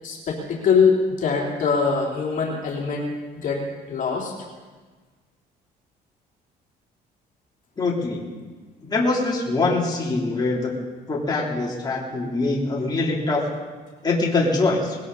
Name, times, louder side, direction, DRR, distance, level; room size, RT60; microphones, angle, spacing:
voice 1, 0.0-3.1 3.4-3.6 3.9-4.3, left 5 dB, 50° left, -2 dB, 3.3 m, -22 dB
voice 2, 7.8-8.2 8.8-10.7 11.1-13.4 14.0-15.0, left 3 dB, 25° left, -4 dB, 3.5 m, -23 dB
20.5 x 16.5 x 4.2 m, 1.4 s
cardioid pair, 110°, 17 cm